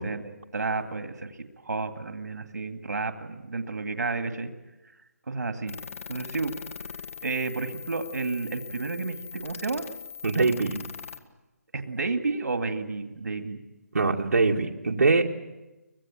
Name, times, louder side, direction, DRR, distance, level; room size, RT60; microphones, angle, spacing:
voice 1, 0.0-1.4 1.6-4.5 5.3-5.8 6.1-6.5 7.2-9.8 11.7-13.6, right 3 dB, 90° right, 6 dB, 2.2 m, -31 dB
sound 1, 5.7-11.2, left 6 dB, 55° left, 1.8 m, -41 dB
voice 2, 10.2-10.7 13.9-15.3, right 3 dB, 70° right, 1 dB, 2.1 m, -22 dB
24.5 x 19.5 x 8.9 m, 1.0 s
hypercardioid pair, 175°, 9 cm